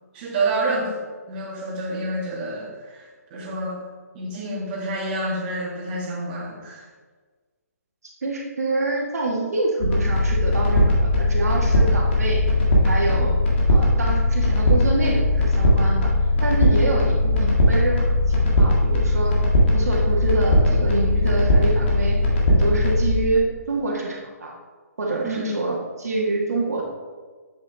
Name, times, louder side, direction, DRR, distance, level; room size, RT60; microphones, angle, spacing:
voice 1, 0.1-3.8 4.1-6.8 25.2-25.5, right 2 dB, 30° right, -3 dB, 1.8 m, -28 dB
voice 2, 8.2-12.4 12.8-13.4 13.7-16.1 16.4-19.4 19.7-22.2 22.5-24.5 25.0-26.8, right 2 dB, 70° right, -2 dB, 1.6 m, -26 dB
sound 1, 9.8-23.2, left 1 dB, 45° left, 1.9 m, -19 dB
8.0 x 6.6 x 3.4 m, 1.4 s
figure-of-eight pair, 140°, 9 cm